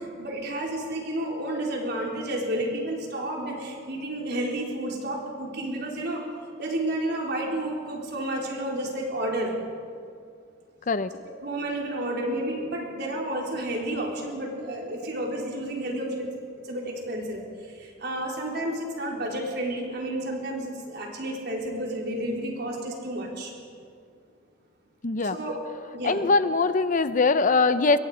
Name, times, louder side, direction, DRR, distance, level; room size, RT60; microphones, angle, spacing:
voice 1, 0.2-6.2 6.6-9.5 11.4-16.3 16.7-17.4 17.8-23.5 25.3-25.6 25.9-26.2, right 1 dB, 60° right, -1 dB, 4.2 m, -31 dB
voice 2, 25.0-25.4 26.0-28.0, left 4 dB, 45° left, 12 dB, 0.7 m, -22 dB
24.5 x 21.5 x 5.0 m, 2.3 s
head